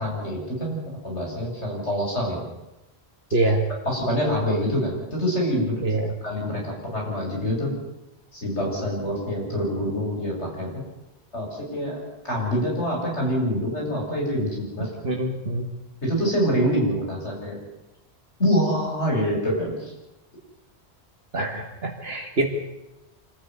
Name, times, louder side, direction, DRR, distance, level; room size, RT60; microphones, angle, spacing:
voice 1, 0.0-2.4 3.8-5.8 6.2-7.7 8.3-10.8 11.3-12.0 12.2-14.9 16.0-17.6 18.4-19.9, equal, 90° left, -2 dB, 8.5 m, -25 dB
voice 2, 3.3-3.7 5.8-6.1 15.0-15.7 21.3-22.5, right 2 dB, 65° right, 2 dB, 2.2 m, -24 dB
26.0 x 15.0 x 9.6 m, 0.96 s
omnidirectional pair, 1.1 m